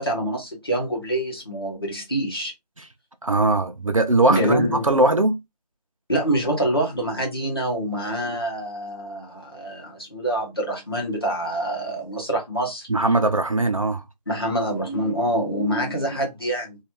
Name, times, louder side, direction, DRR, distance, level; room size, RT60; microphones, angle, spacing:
voice 1, 0.0-2.5 4.3-4.8 6.1-12.9 14.3-16.8, right 1 dB, 35° left, 0.9 m, -26 dB
voice 2, 3.2-5.4 12.9-14.0, right 2 dB, 55° right, 0.4 m, -20 dB
2.4 x 2.3 x 2.8 m
figure-of-eight pair, 180°, 21 cm